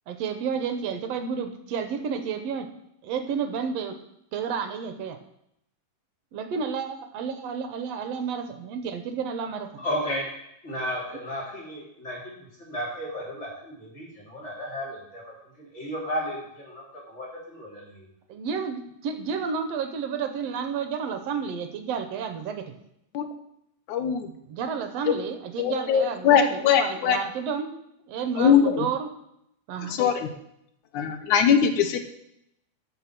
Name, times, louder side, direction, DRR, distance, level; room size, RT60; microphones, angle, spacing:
voice 1, 0.1-2.7 3.0-4.0 4.3-5.2 6.3-9.8 18.3-22.7 24.5-27.7 28.1-29.1 29.7-30.0, right 6 dB, 70° right, 7 dB, 1.9 m, -31 dB
voice 2, 9.8-10.3 10.6-18.1, equal, 20° left, -4 dB, 3.7 m, -34 dB
voice 3, 23.9-24.3 25.1-25.2 25.6-27.2 28.4-28.9 29.9-30.3 30.9-32.0, left 8 dB, 85° left, 7 dB, 2.4 m, -21 dB
13.5 x 5.6 x 6.0 m, 0.76 s
omnidirectional pair, 3.4 m